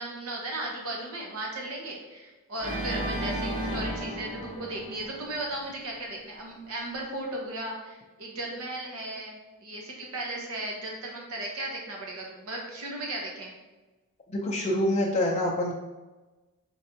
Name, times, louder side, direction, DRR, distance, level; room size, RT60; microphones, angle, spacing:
voice 1, 0.0-13.5, right 1 dB, 75° right, -1 dB, 0.9 m, -36 dB
Organ, 2.6-5.7, right 1 dB, 40° right, 1.3 m, -33 dB
voice 2, 14.3-15.7, left 1 dB, 30° left, -5 dB, 0.5 m, -26 dB
5.3 x 3.2 x 2.8 m, 1.2 s
head